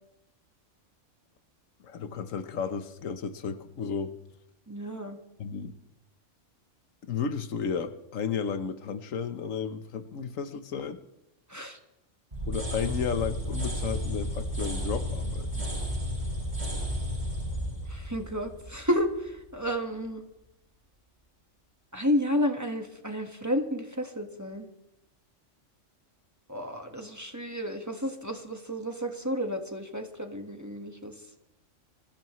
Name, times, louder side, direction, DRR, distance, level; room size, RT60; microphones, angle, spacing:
voice 1, 1.8-4.1 5.4-5.7 7.1-11.0 12.5-15.6, left 6 dB, 90° left, 10 dB, 1.4 m, -33 dB
voice 2, 4.7-5.2 11.5-11.8 17.9-20.2 21.9-24.7 26.5-31.1, equal, 15° right, 4 dB, 1.4 m, -31 dB
sound 1, 12.3-19.2, equal, 35° right, 7.8 m, -32 dB
25.0 x 15.0 x 3.1 m, 0.89 s
omnidirectional pair, 1.3 m